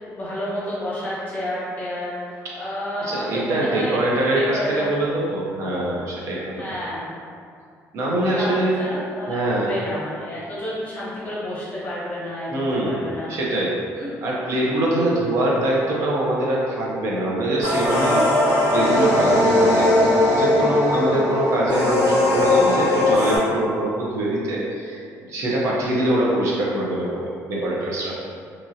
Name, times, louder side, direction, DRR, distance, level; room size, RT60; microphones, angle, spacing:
voice 1, 0.0-4.9 6.6-7.2 8.3-12.5 12.8-13.3 14.0-14.2, left 1 dB, 25° left, -9 dB, 1.0 m, -30 dB
voice 2, 3.0-6.7 7.9-8.7 9.3-9.8 12.5-13.0 13.3-19.9 20.3-28.2, right 1 dB, 55° right, -5 dB, 0.5 m, -23 dB
sound 1, 17.6-23.4, left 1 dB, 30° right, 1.1 m, -19 dB
2.9 x 2.6 x 2.6 m, 2.3 s
cardioid pair, 165°, 6 cm